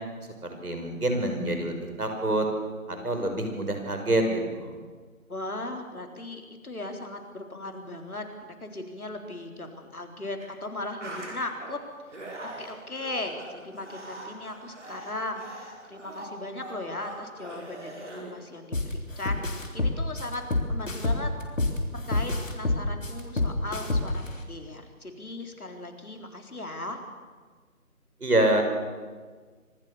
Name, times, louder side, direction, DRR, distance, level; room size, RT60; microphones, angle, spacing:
voice 1, 0.6-2.5 2.9-4.7 28.2-28.6, right 1 dB, 90° right, 4 dB, 5.8 m, -26 dB
voice 2, 5.3-11.8 12.4-21.3 21.9-24.2 24.5-27.0, left 2 dB, 75° left, 4 dB, 3.9 m, -37 dB
sound 1, 10.4-10.5 10.8-11.7 12.1-18.3, right 2 dB, 55° right, 5.3 m, -42 dB
sound 2, 18.7-18.9 19.3-21.8 22.1-24.3, left 2 dB, 60° left, 3.4 m, -26 dB
25.5 x 17.0 x 7.0 m, 1.5 s
figure-of-eight pair, 175°, 43 cm